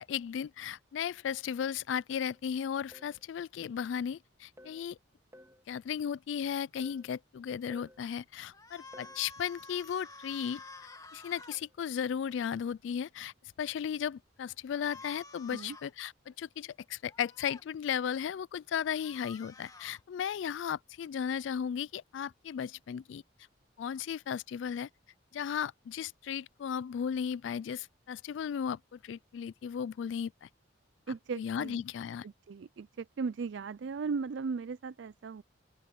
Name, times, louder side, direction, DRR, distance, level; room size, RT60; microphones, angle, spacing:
voice 1, 0.1-5.0 5.7-10.6 11.1-13.3 13.6-23.2 23.8-24.9 25.3-30.5 31.4-32.2, left 8 dB, 75° left, 0.3 m, -35 dB
sound 1, 2.1-2.4 2.9-3.2 4.6-4.9 5.3-5.6 6.8-7.1 7.7-8.0 8.9-9.3 11.5-11.8 12.3-12.5, left 1 dB, 15° right, 3.1 m, -55 dB
sound 2, 8.5-11.6 14.7-15.9 17.0-17.6 18.8-20.0, left 3 dB, 20° left, 2.2 m, -51 dB
voice 2, 31.1-31.8 32.2-35.4, right 5 dB, 70° right, 0.4 m, -37 dB
open air
head